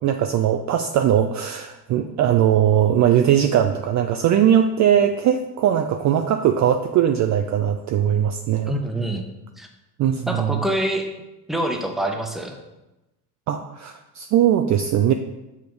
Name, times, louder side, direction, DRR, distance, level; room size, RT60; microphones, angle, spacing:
voice 1, 0.0-8.7 10.0-10.6 13.5-15.1, right 10 dB, 40° right, 7 dB, 0.5 m, -20 dB
voice 2, 8.7-9.2 9.6-9.7 10.3-11.1 11.5-12.5, right 1 dB, ahead, 2 dB, 1.0 m, -25 dB
6.7 x 5.0 x 3.9 m, 1.0 s
supercardioid pair, 85°, 46 cm